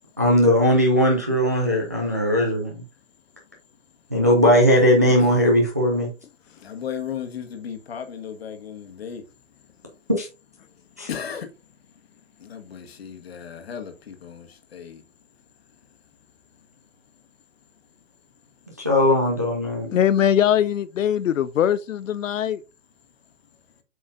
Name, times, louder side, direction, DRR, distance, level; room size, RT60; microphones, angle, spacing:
voice 1, 0.2-2.8 4.1-6.1 10.1-10.3 11.0-11.1 18.8-19.9, equal, 15° right, 0.4 m, -19 dB
voice 2, 6.6-9.2 11.1-11.5 12.4-15.0, left 8 dB, 50° left, 1.4 m, -35 dB
voice 3, 19.9-22.6, left 10 dB, 75° left, 0.6 m, -21 dB
7.7 x 5.4 x 2.6 m
hypercardioid pair, 165°, 39 cm